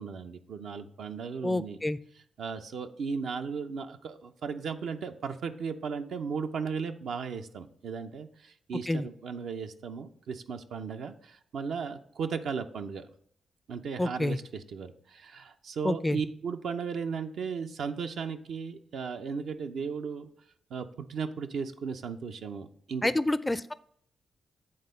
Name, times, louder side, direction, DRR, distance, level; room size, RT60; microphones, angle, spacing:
voice 1, 0.0-1.8 2.4-13.0 13.7-20.3 20.7-23.1, right 5 dB, 75° right, 6 dB, 0.5 m, -36 dB
voice 2, 1.4-2.0 8.9-9.1 14.0-14.4 15.8-16.2 23.0-23.7, left 1 dB, 20° left, 16 dB, 0.4 m, -28 dB
8.8 x 3.7 x 5.3 m, 0.66 s
supercardioid pair, 50°, 0 cm